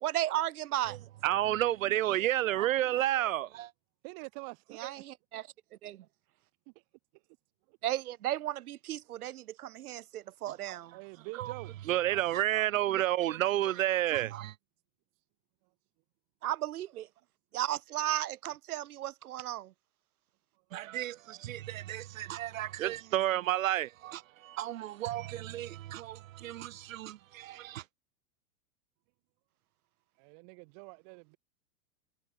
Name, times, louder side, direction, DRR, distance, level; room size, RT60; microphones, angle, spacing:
voice 1, 0.0-1.0 4.7-5.0 5.3-5.5 5.8-6.0 7.8-11.0 16.4-17.1 17.5-19.7, right 13 dB, 80° right, 1.6 m, -34 dB
voice 2, 1.2-3.7 11.3-11.5 11.9-14.5 20.7-27.8, right 13 dB, 60° right, 2.2 m, -31 dB
voice 3, 4.0-5.0 7.7-7.8 10.9-11.7 30.2-31.4, right 40 dB or more, 30° right, 3.7 m, -45 dB
supercardioid pair, 180°, 44 cm